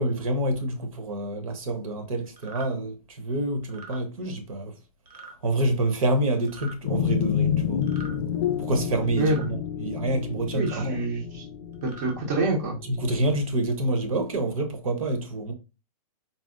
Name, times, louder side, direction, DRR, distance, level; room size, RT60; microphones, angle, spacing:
voice 1, 0.0-4.7 5.4-7.8 8.7-11.0 13.0-15.5, right 1 dB, 60° right, 1.0 m, -27 dB
sound 1, 2.4-2.7 3.6-4.0 5.1-5.3 6.4-6.8 7.8-8.2 9.2-9.5 10.5-10.9 11.7-12.1, right 3 dB, 80° right, 1.2 m, -43 dB
sound 2, 6.8-13.4, left 8 dB, 35° left, 0.4 m, -29 dB
voice 2, 10.5-11.4 11.8-12.8, right 2 dB, 30° right, 0.7 m, -26 dB
4.2 x 2.0 x 3.6 m
hypercardioid pair, 175°, 20 cm